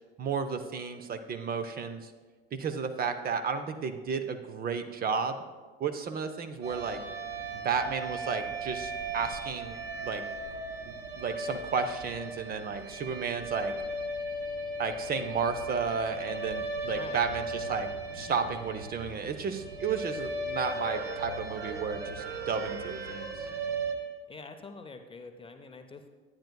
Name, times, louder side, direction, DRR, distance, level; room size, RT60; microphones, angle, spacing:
voice 1, 0.2-2.1 2.5-5.4 5.8-7.0 7.6-10.2 10.9-13.7 14.8-17.9 18.1-23.3, right 5 dB, 30° right, 9 dB, 0.6 m, -33 dB
sound 1, 6.6-23.9, right 2 dB, 65° right, 1.4 m, -37 dB
voice 2, 16.8-17.3 24.3-26.1, left 3 dB, 20° left, 7 dB, 0.5 m, -46 dB
10.0 x 9.3 x 2.3 m, 1.4 s
hypercardioid pair, 85°, 30 cm